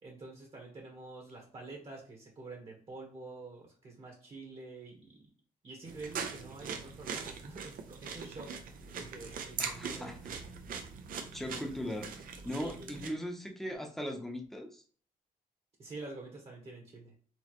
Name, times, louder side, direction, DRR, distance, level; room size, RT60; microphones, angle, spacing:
voice 1, 0.0-5.2 5.6-8.5 8.9-10.1 12.6-13.0 15.8-17.2, right 3 dB, 40° right, 0 dB, 1.3 m, -47 dB
sound 1, 5.9-13.1, right 6 dB, 75° right, 0.7 m, -41 dB
voice 2, 9.6-10.2 11.3-12.1 12.4-14.8, equal, ahead, 2 dB, 0.8 m, -39 dB
4.4 x 2.9 x 3.0 m, 0.43 s
cardioid pair, 110°, 15 cm